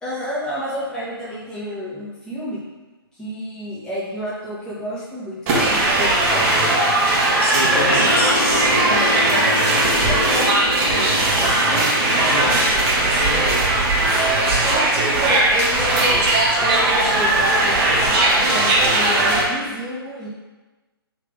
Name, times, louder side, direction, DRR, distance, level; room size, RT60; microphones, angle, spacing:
voice 1, 0.0-2.6 3.2-6.8 7.6-8.1 8.8-9.4 10.0-11.8 14.6-20.3, left 1 dB, 5° left, -9 dB, 0.9 m, -30 dB
sound 1, 5.5-19.4, right 2 dB, 25° right, 0.9 m, -18 dB
voice 2, 7.4-8.4 12.3-12.7 13.0-13.7, left 1 dB, 75° left, -2 dB, 0.9 m, -27 dB
sound 2, 7.9-13.4, left 3 dB, 30° left, 0.5 m, -28 dB
3.3 x 2.8 x 3.6 m, 1.2 s
figure-of-eight pair, 135°, 13 cm